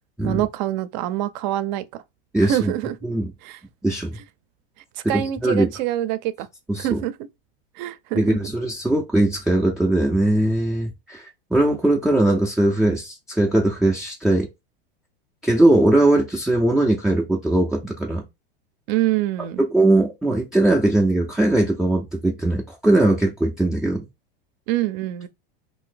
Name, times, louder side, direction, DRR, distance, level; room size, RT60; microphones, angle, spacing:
voice 1, 0.2-1.8 2.4-3.0 3.4-3.6 5.1-6.5 6.8-7.1 7.8-8.4 18.9-19.6 24.7-25.3, right 13 dB, 50° right, 0.5 m, -25 dB
voice 2, 2.3-2.7 3.0-3.3 3.8-4.1 5.0-5.7 6.7-7.0 8.1-14.5 15.4-18.2 19.6-24.0, right 1 dB, ahead, 0.3 m, -20 dB
2.6 x 2.6 x 3.8 m
supercardioid pair, 140°, 29 cm